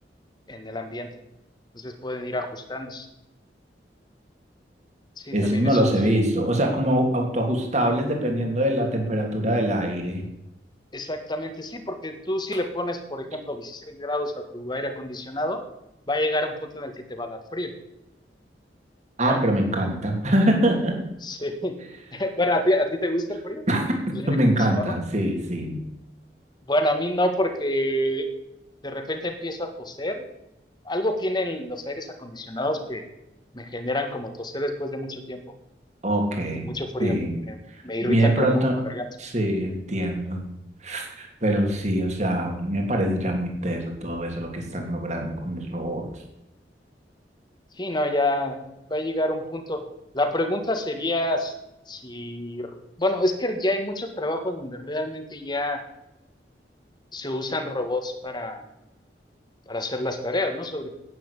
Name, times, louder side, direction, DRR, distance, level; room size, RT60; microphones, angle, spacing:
voice 1, 0.5-1.1 1.7-3.1 5.2-5.8 10.9-15.6 16.1-17.7 19.3-19.4 21.2-21.8 22.1-23.6 24.1-25.0 26.7-28.3 28.8-30.2 30.9-33.0 33.5-35.4 36.5-37.2 37.5-37.6 37.8-39.1 47.8-48.6 48.9-49.8 50.1-51.5 51.9-52.7 53.0-55.8 57.1-58.6 59.7-60.9, left 1 dB, 25° left, 6 dB, 1.9 m, -28 dB
voice 2, 5.3-10.2 19.2-20.9 23.7-23.8 24.3-25.8 36.0-36.7 37.0-37.4 38.0-38.7 39.2-40.4 40.8-46.1, right 1 dB, 40° right, 2 dB, 3.1 m, -24 dB
11.0 x 9.3 x 8.4 m, 0.89 s
head